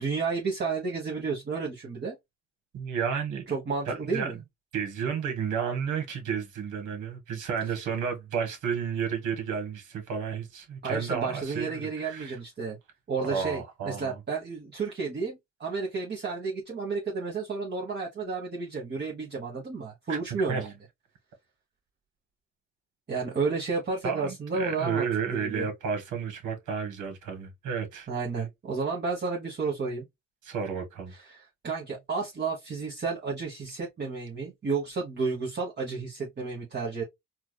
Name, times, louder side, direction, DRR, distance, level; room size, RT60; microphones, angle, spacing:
voice 1, 0.0-2.1 3.5-4.4 10.8-12.8 13.1-20.7 23.1-25.7 28.1-30.1 31.1-37.0, right 4 dB, 35° right, 1.2 m, -32 dB
voice 2, 2.7-3.4 3.9-4.3 4.7-12.4 13.2-14.2 20.1-20.2 20.5-20.7 24.0-28.1 28.4-28.5 30.4-31.1, right 6 dB, 80° right, 1.6 m, -32 dB
4.5 x 2.5 x 2.2 m
cardioid pair, 90°, 30 cm